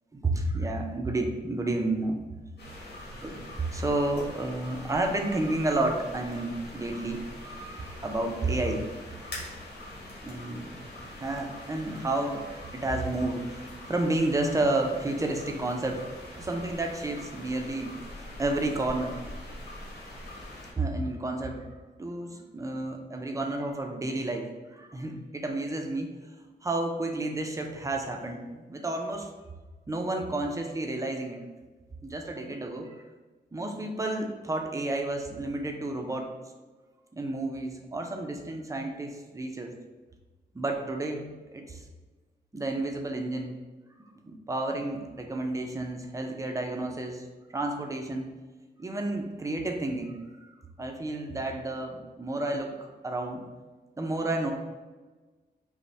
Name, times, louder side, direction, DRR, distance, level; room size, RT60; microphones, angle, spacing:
voice 1, 0.1-2.2 3.2-8.8 10.2-10.8 11.2-16.1 16.4-18.0 18.4-19.2 20.8-21.7 22.0-26.1 26.6-29.3 29.9-31.4 32.0-33.0 33.5-36.3 37.1-39.7 40.5-41.8 42.5-43.6 44.2-47.2 47.5-48.3 48.8-50.5 50.8-53.4 54.0-54.5, right 2 dB, 20° right, 3 dB, 0.4 m, -31 dB
sound 1, 2.6-20.7, left 1 dB, 70° left, 1.3 m, -43 dB
5.1 x 2.1 x 3.2 m, 1.3 s
wide cardioid pair, 135°, 17 cm